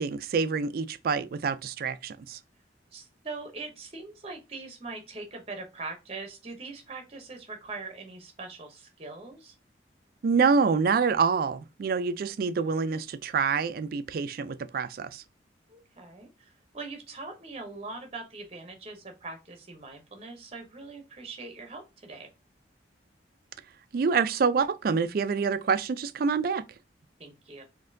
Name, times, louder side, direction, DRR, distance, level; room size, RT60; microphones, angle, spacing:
voice 1, 0.0-2.4 10.2-15.2 23.9-26.6, right 5 dB, 55° right, 0.3 m, -26 dB
voice 2, 2.9-9.5 15.7-22.3 27.2-27.6, right 3 dB, 35° right, 0.7 m, -42 dB
4.2 x 2.7 x 2.5 m
head